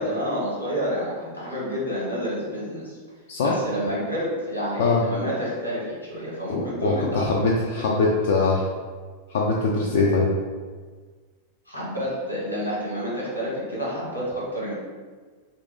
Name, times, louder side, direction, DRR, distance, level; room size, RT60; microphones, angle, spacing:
voice 1, 0.0-2.9 3.4-7.3 11.7-14.7, equal, 85° left, -6 dB, 1.3 m, -29 dB
voice 2, 6.5-8.7 9.3-10.3, left 3 dB, 60° left, -2 dB, 0.4 m, -22 dB
2.9 x 2.5 x 3.8 m, 1.5 s
figure-of-eight pair, 90°, 0 cm